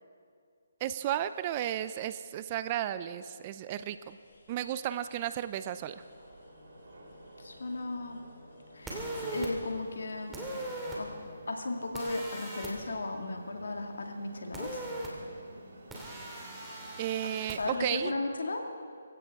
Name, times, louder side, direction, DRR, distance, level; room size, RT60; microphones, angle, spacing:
voice 1, 0.8-4.2 4.5-6.0 17.0-18.1, right 11 dB, 30° right, 13 dB, 0.5 m, -33 dB
sound 1, 3.9-11.4, left 3 dB, 60° left, 2.0 m, -57 dB
sound 2, 5.3-18.2, right 1 dB, 65° right, 3.8 m, -53 dB
voice 2, 7.4-8.2 8.7-10.6 11.0-11.1 11.5-14.9 17.6-18.6, left 2 dB, 75° left, 3 dB, 2.2 m, -35 dB
sound 3, 8.9-9.5 10.3-11.0 11.9-12.7 14.5-15.1 15.9-17.6, right 2 dB, 10° right, 2.7 m, -39 dB
23.5 x 16.0 x 3.7 m, 2.2 s
hypercardioid pair, 155°, 0 cm